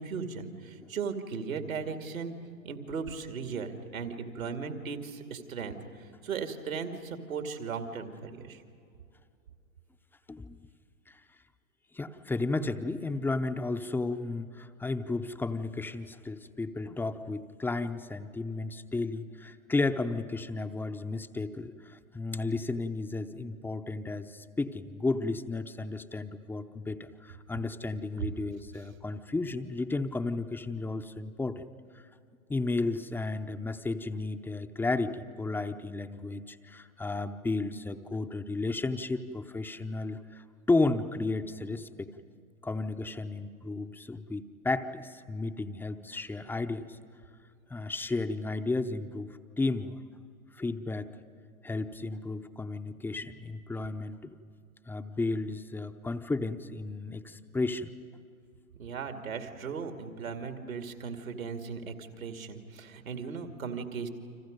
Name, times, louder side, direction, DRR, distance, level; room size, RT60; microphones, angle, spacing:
voice 1, 0.0-2.3 2.6-8.6 28.2-28.3 58.8-64.1, right 5 dB, 75° right, 5 dB, 2.5 m, -37 dB
voice 2, 10.3-10.6 11.9-31.6 32.5-42.1 42.6-47.0 47.7-50.0 50.5-51.1 51.6-54.3 54.9-57.9, left 3 dB, 5° left, 9 dB, 0.7 m, -33 dB
30.0 x 26.0 x 5.3 m, 2.4 s
figure-of-eight pair, 105°, 41 cm